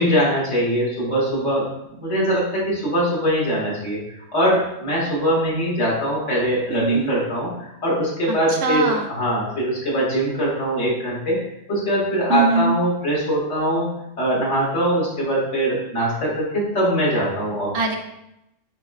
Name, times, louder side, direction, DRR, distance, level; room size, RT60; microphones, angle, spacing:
voice 1, 0.0-1.7 2.0-11.4 11.7-13.9 14.2-17.7, equal, 75° left, -5 dB, 1.8 m, -22 dB
voice 2, 6.7-7.1 8.3-8.4 8.6-9.1 12.3-12.7 17.7-18.0, right 3 dB, 85° right, 2 dB, 1.1 m, -21 dB
5.7 x 3.2 x 2.4 m, 0.84 s
omnidirectional pair, 1.3 m